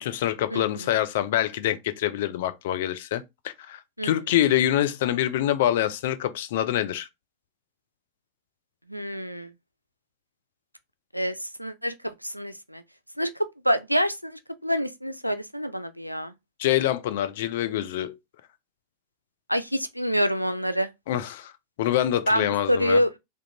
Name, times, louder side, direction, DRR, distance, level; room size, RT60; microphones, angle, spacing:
voice 1, 0.0-7.1 16.6-18.2 21.1-21.5 21.8-23.0, left 12 dB, 55° left, 0.4 m, -25 dB
voice 2, 0.5-0.9 4.0-4.1 8.9-9.5 11.1-12.8 13.2-13.3 13.6-16.3 19.5-20.9 22.3-23.2, equal, 90° right, 0.3 m, -27 dB
3.5 x 2.4 x 2.8 m
figure-of-eight pair, 90°, 0 cm